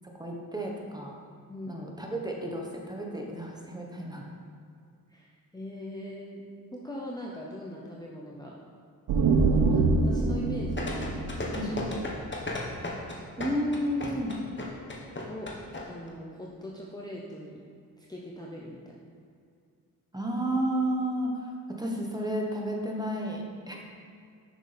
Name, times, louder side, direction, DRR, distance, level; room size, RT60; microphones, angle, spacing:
voice 1, 0.1-1.2 1.7-4.3 11.5-11.8 13.4-14.3 20.1-23.8, right 1 dB, 10° right, -1 dB, 1.3 m, -32 dB
voice 2, 1.5-1.8 5.1-6.4 6.7-8.6 9.7-11.7 12.1-12.2 15.3-15.5 15.8-17.6 18.0-19.1, equal, 10° left, -3 dB, 0.9 m, -41 dB
sound 1, 9.1-12.7, right 3 dB, 65° right, 0.7 m, -26 dB
sound 2, 10.8-15.8 16.1-16.2, left 2 dB, 30° left, 1.4 m, -34 dB
6.5 x 6.0 x 3.5 m, 2.4 s
supercardioid pair, 50°, 39 cm